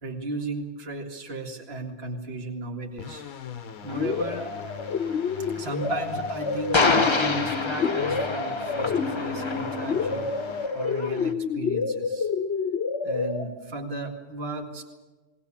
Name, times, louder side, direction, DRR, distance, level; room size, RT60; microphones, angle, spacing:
voice 1, 0.0-3.2 3.8-4.5 5.5-12.3 13.0-14.9, right 3 dB, 40° right, 2 dB, 2.3 m, -35 dB
sound 1, 3.0-10.7, left 7 dB, 65° left, 1.4 m, -41 dB
sound 2, 3.9-13.5, left 5 dB, 45° left, 1.3 m, -29 dB
sound 3, 3.9-11.3, left 3 dB, 25° left, 0.7 m, -29 dB
19.5 x 19.0 x 8.6 m, 1.2 s
omnidirectional pair, 1.6 m